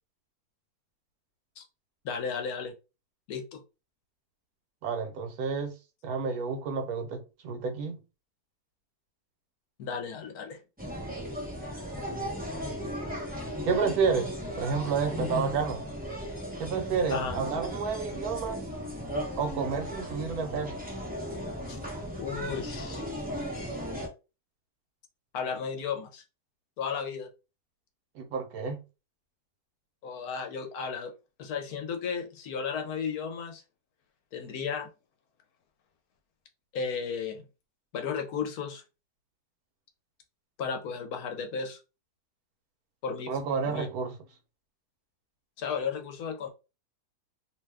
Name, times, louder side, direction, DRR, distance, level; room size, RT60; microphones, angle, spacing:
voice 1, 2.0-2.7 3.3-3.6 9.8-10.6 17.1-17.4 21.7-21.8 22.2-23.0 25.3-26.2 26.8-27.3 30.0-31.1 31.4-33.6 34.3-34.9 36.7-37.5 37.9-38.8 40.6-41.8 43.0-43.3 43.6-43.9 45.6-46.5, left 6 dB, 70° left, 1.1 m, -34 dB
voice 2, 4.8-5.8 6.0-8.0 13.6-15.8 16.6-18.6 19.4-20.8 28.1-28.8 43.3-44.1, right 5 dB, 70° right, 1.1 m, -30 dB
sound 1, 10.8-24.1, equal, 15° right, 0.3 m, -36 dB
2.8 x 2.2 x 3.4 m
omnidirectional pair, 1.7 m